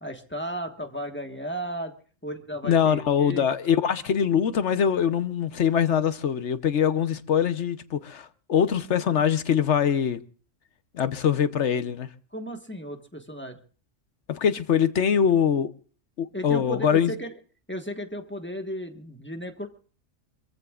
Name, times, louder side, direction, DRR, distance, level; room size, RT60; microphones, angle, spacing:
voice 1, 0.0-1.9 2.2-3.5 12.3-13.6 16.3-17.3 17.7-19.7, equal, 10° left, 1.4 m, -34 dB
voice 2, 2.6-10.2 10.9-12.1 14.3-15.7 16.2-17.1, left 8 dB, 65° left, 1.2 m, -23 dB
26.5 x 15.0 x 2.5 m
omnidirectional pair, 1.3 m